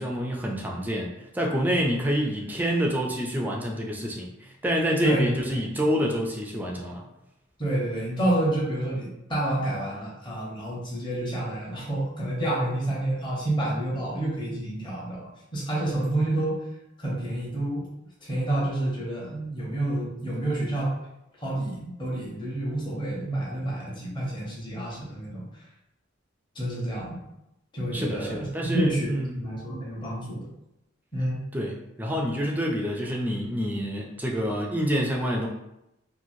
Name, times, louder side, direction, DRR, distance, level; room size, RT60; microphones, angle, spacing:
voice 1, 0.0-7.0 27.9-29.4 31.5-35.5, equal, 10° right, -1 dB, 0.3 m, -27 dB
voice 2, 7.6-16.6 17.0-17.9 18.2-20.9 21.4-25.4 26.5-27.2 27.7-28.5 28.7-30.4 31.1-31.4, right 1 dB, 25° left, -6 dB, 0.8 m, -29 dB
2.9 x 2.4 x 2.6 m, 0.87 s
head